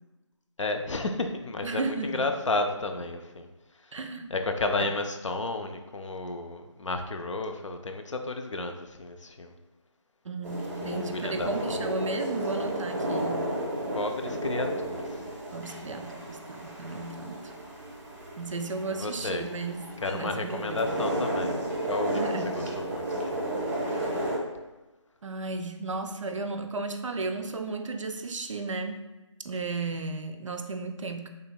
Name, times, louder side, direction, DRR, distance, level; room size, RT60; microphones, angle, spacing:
voice 1, 0.6-3.5 3.8-3.9 4.3-9.6 10.8-11.9 13.9-15.2 18.9-19.5 20.0-21.6 21.9-23.4, left 2 dB, 75° left, 5 dB, 0.5 m, -32 dB
voice 2, 1.6-2.3 3.9-4.3 4.8-4.9 10.2-13.4 15.5-17.5 18.4-19.8 20.1-20.9 22.1-22.5 23.8-24.3 25.2-29.0 29.4-31.3, right 3 dB, 75° right, 7 dB, 0.4 m, -34 dB
sound 1, 10.4-24.4, right 1 dB, 35° right, 0.9 m, -33 dB
3.9 x 3.3 x 2.2 m, 1.1 s
figure-of-eight pair, 165°, 16 cm